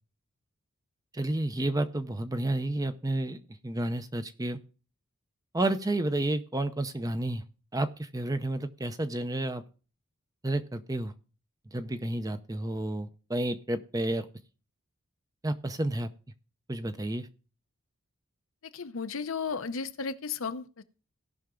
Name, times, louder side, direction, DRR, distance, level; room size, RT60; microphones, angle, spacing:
voice 1, 1.1-4.6 5.5-7.4 7.7-9.6 10.4-11.1 11.7-14.3 15.4-16.1 16.7-17.3, right 1 dB, 15° right, 10 dB, 0.6 m, -31 dB
voice 2, 18.7-20.8, left 5 dB, 65° left, 10 dB, 0.7 m, -34 dB
17.5 x 5.8 x 3.8 m, 0.36 s
head